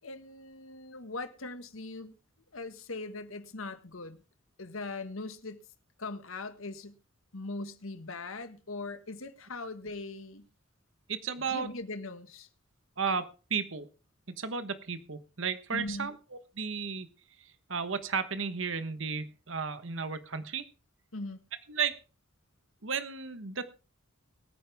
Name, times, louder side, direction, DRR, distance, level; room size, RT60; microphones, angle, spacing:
voice 1, 0.0-2.1 2.5-4.2 4.6-5.6 6.0-7.0 7.3-10.5 11.5-12.5 15.7-16.1 21.1-21.4, left 2 dB, 90° left, 1.7 m, -40 dB
voice 2, 11.1-11.7 13.0-13.9 14.4-16.2 16.6-17.1 17.7-20.6 21.7-22.0 22.8-23.7, right 5 dB, 65° right, 1.2 m, -33 dB
22.0 x 9.3 x 3.5 m
head